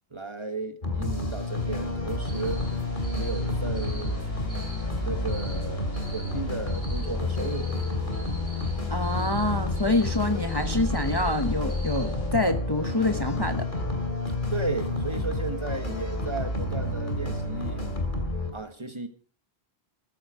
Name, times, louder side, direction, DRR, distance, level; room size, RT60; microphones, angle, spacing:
voice 1, 0.1-2.6 3.1-4.3 5.0-7.8 14.5-17.8 18.5-19.1, right 3 dB, 30° right, 1.4 m, -34 dB
sound 1, 0.8-18.5, left 2 dB, 50° left, 3.0 m, -30 dB
sound 2, 2.2-12.3, equal, 70° left, 6.3 m, -39 dB
voice 2, 8.9-13.7, left 2 dB, 25° left, 0.9 m, -26 dB
14.5 x 13.5 x 4.8 m
omnidirectional pair, 1.1 m